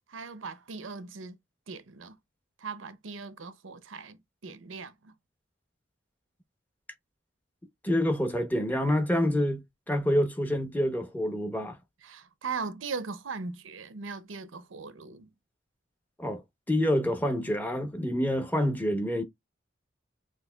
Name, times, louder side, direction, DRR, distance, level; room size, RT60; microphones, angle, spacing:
voice 1, 0.1-1.4 1.7-2.1 2.6-5.1 12.0-15.3, right 4 dB, 90° right, 0.7 m, -39 dB
voice 2, 7.8-11.8 16.2-16.4 16.7-19.2, equal, 10° left, 0.9 m, -27 dB
6.0 x 2.8 x 2.3 m
head